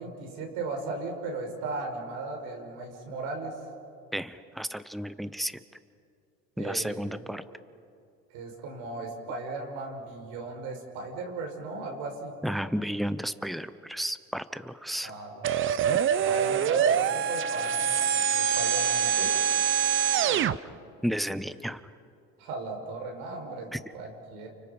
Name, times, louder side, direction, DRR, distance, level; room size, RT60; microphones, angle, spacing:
voice 1, 0.0-3.6 6.6-7.2 8.3-12.3 15.0-15.5 16.2-19.4 22.4-24.5, right 3 dB, 80° right, 2 dB, 5.9 m, -36 dB
voice 2, 4.1-5.6 6.6-7.4 12.4-15.1 21.0-21.8 23.7-23.8, equal, ahead, 13 dB, 0.9 m, -32 dB
sound 1, 15.4-20.6, right 8 dB, 45° right, 0.8 m, -25 dB
30.0 x 30.0 x 5.4 m, 2.4 s
supercardioid pair, 110°, 30 cm